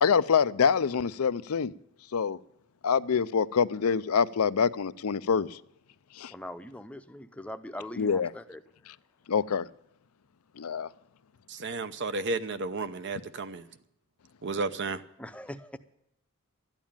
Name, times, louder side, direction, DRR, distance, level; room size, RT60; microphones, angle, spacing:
voice 1, 0.0-1.7 2.1-2.4 2.8-5.6 6.2-6.3 8.0-8.3 9.3-9.7 10.6-10.9, left 6 dB, 90° left, 0.5 m, -25 dB
voice 2, 6.3-8.6 15.2-15.8, left 1 dB, 5° left, 0.7 m, -41 dB
voice 3, 11.5-13.7 14.4-15.0, right 3 dB, 55° right, 0.8 m, -32 dB
12.5 x 9.1 x 8.8 m
head